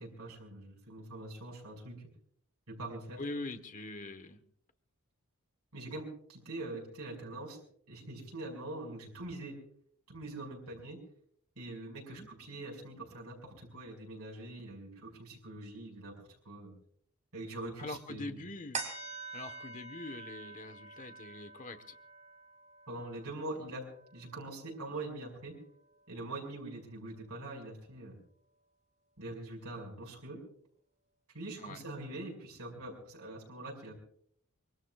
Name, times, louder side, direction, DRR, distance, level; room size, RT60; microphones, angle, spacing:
voice 1, 0.0-2.1 2.7-3.2 5.7-7.6 7.9-9.6 10.1-11.0 11.6-16.1 16.5-16.7 17.3-18.4 22.9-23.8 24.1-25.6 26.1-28.2 29.2-30.4 31.3-33.9, right 2 dB, 80° right, -1 dB, 5.7 m, -43 dB
voice 2, 3.2-4.4 12.1-12.3 17.8-21.9 31.6-31.8, left 2 dB, 35° left, 9 dB, 1.2 m, -43 dB
sound 1, 18.7-25.5 25.9-26.0, right 4 dB, 30° right, 2.4 m, -46 dB
25.0 x 22.5 x 2.4 m, 0.62 s
head